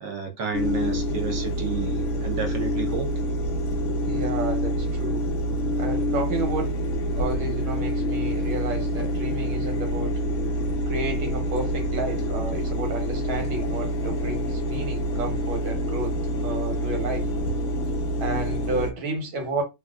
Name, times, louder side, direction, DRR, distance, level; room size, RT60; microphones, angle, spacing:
voice 1, 0.0-3.1, right 6 dB, 60° right, 1.1 m, -31 dB
sound 1, 0.5-18.9, equal, 80° left, 0.6 m, -26 dB
voice 2, 4.0-5.3 5.8-6.8 7.1-10.2 10.9-17.3 18.2-19.6, right 2 dB, 85° right, 1.8 m, -31 dB
3.5 x 2.4 x 2.3 m
omnidirectional pair, 2.2 m